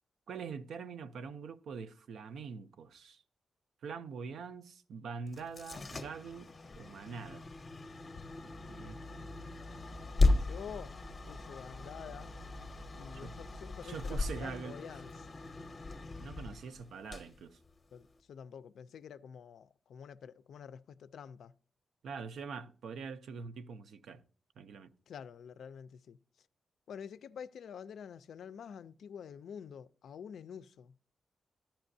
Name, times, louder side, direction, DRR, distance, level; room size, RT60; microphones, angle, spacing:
voice 1, 0.3-3.2 3.8-6.5 6.8-7.5 8.7-9.0 13.1-13.4 13.8-14.8 16.2-17.6 22.0-24.2 24.6-24.9, right 5 dB, 85° right, 0.5 m, -44 dB
sound 1, 5.3-18.2, left 3 dB, 25° left, 0.6 m, -36 dB
sound 2, 8.3-14.5, equal, 35° right, 0.4 m, -51 dB
voice 2, 10.3-11.0 11.3-12.4 13.0-15.3 17.9-21.5 25.1-26.2 26.9-30.9, left 7 dB, 75° left, 0.4 m, -48 dB
14.0 x 10.0 x 2.6 m
wide cardioid pair, 175°, 0 cm